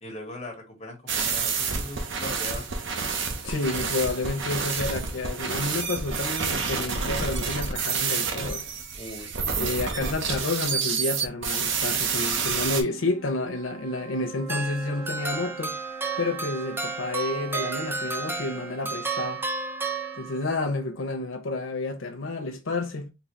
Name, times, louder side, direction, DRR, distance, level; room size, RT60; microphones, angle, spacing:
voice 1, 0.0-2.7 8.9-9.8, left 1 dB, 35° left, 1.4 m, -40 dB
sound 1, 1.1-12.8, right 5 dB, 70° right, 0.7 m, -28 dB
voice 2, 3.4-8.6 9.5-15.8 16.2-19.5 20.2-23.1, left 2 dB, 90° left, 0.7 m, -30 dB
sound 2, 11.6-21.1, right 5 dB, 10° left, 1.6 m, -43 dB
sound 3, 14.5-20.6, right 4 dB, 10° right, 0.4 m, -32 dB
3.9 x 2.8 x 3.1 m
head